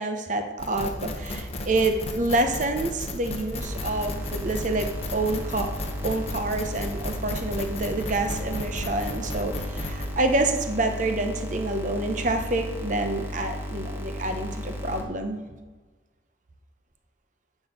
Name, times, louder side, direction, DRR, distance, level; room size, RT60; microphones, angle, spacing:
voice 1, 0.0-5.7 6.0-15.4, right 2 dB, 45° right, 6 dB, 0.8 m, -27 dB
sound 1, 0.6-10.1, left 1 dB, 35° left, 1.0 m, -34 dB
sound 2, 3.6-15.0, left 1 dB, 15° right, 1.1 m, -35 dB
8.8 x 6.1 x 5.2 m, 1.3 s
head